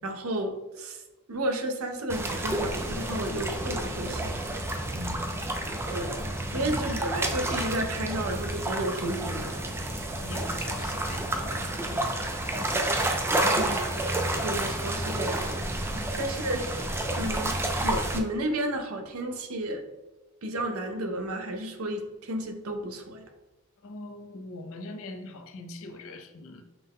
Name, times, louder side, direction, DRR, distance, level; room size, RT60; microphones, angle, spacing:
voice 1, 0.0-1.0 1.3-4.4 5.9-6.2 6.5-9.5 13.5-13.9 14.4-19.8 20.4-23.2, right 1 dB, 70° right, 4 dB, 0.6 m, -32 dB
sound 1, 2.1-18.2, right 1 dB, 10° right, 0.4 m, -30 dB
voice 2, 4.9-5.5 6.5-6.9 9.7-12.5 15.9-16.2 23.8-26.7, left 2 dB, 65° left, 6 dB, 0.5 m, -43 dB
5.8 x 2.1 x 3.5 m, 1.1 s
head